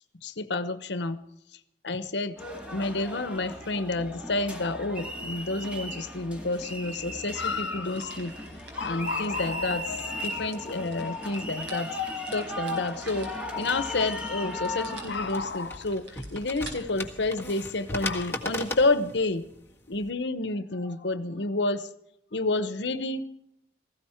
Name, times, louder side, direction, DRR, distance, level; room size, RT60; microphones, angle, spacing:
voice 1, 0.2-1.2 1.5-1.6 1.8-2.4 2.7-8.3 8.8-11.9 12.3-19.4 19.9-21.9 22.3-23.3, left 2 dB, 75° left, 12 dB, 1.0 m, -29 dB
sound 1, 2.4-15.3, left 1 dB, 5° right, 2.3 m, -36 dB
sound 2, 7.9-16.8, right 2 dB, 80° right, 5.0 m, -50 dB
sound 3, 14.7-20.1, left 1 dB, 15° left, 1.6 m, -38 dB
17.5 x 15.5 x 4.5 m, 0.77 s
head